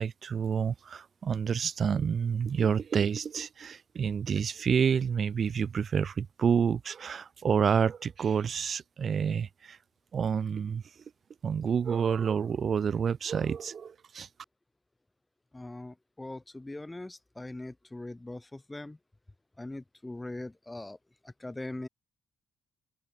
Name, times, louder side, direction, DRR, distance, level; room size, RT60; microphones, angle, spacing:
voice 1, 0.0-9.8 10.1-10.8 11.4-14.3, right 7 dB, 50° right, 2.0 m, -28 dB
voice 2, 15.5-19.0 19.6-21.0 21.2-21.9, left 2 dB, 15° left, 3.0 m, -41 dB
cardioid pair, 90°, 0 cm